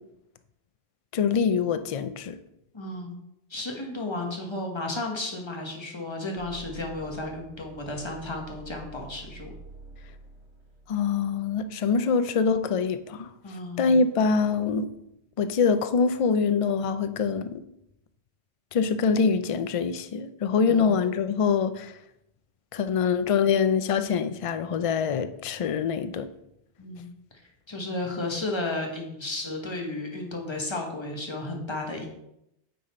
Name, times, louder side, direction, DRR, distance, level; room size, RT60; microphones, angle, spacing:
voice 1, 1.1-2.4 10.9-13.3 13.8-14.9 15.4-17.6 18.7-21.9 22.7-26.3, left 5 dB, 55° left, 0.4 m, -24 dB
voice 2, 2.7-3.2 3.5-9.5 13.4-13.9 20.7-20.9 26.8-27.1 27.7-32.1, left 2 dB, 25° left, 1.3 m, -33 dB
sound 1, 6.4-11.8, right 3 dB, 85° right, 1.2 m, -48 dB
9.2 x 4.1 x 4.3 m
omnidirectional pair, 1.1 m